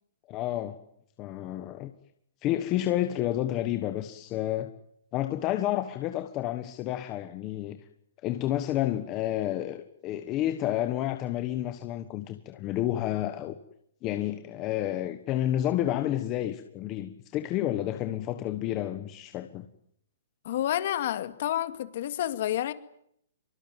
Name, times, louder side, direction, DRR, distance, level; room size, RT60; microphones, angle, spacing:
voice 1, 0.3-0.8 1.2-1.9 2.4-4.7 5.1-7.8 8.2-13.6 14.0-19.7, left 13 dB, 20° left, 1.3 m, -30 dB
voice 2, 20.4-22.7, left 12 dB, 40° left, 2.3 m, -29 dB
25.0 x 24.5 x 9.2 m
hypercardioid pair, 175°, 0 cm